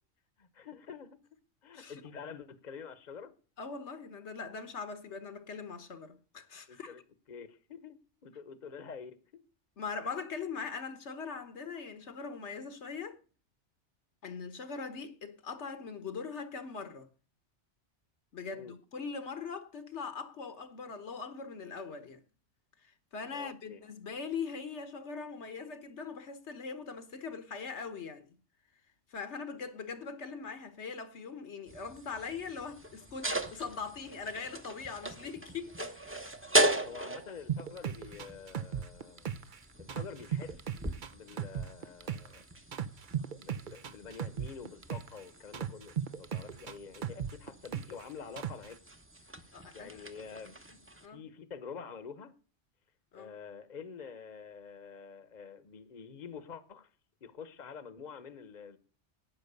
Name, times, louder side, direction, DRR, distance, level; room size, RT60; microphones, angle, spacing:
voice 1, 0.4-1.2 1.6-3.3 6.7-7.0 7.3-8.0 8.2-9.2 18.5-18.8 23.3-23.8 36.8-39.3 39.8-40.5 41.1-42.4 43.4-48.8 49.7-52.3 53.1-56.9 57.2-58.8, left 6 dB, 40° left, 1.1 m, -47 dB
voice 2, 3.6-6.9 9.8-13.2 14.2-17.1 18.3-22.2 22.8-28.3 29.1-36.0 49.5-50.0 51.0-51.2 53.1-53.3, left 5 dB, 70° left, 1.4 m, -41 dB
sound 1, 31.7-51.1, right 1 dB, 10° right, 0.9 m, -38 dB
sound 2, 37.5-39.6 39.9-42.4 42.7-45.2 45.5-48.0 48.4-48.7, right 9 dB, 50° right, 0.8 m, -36 dB
12.5 x 9.2 x 6.7 m
omnidirectional pair, 1.2 m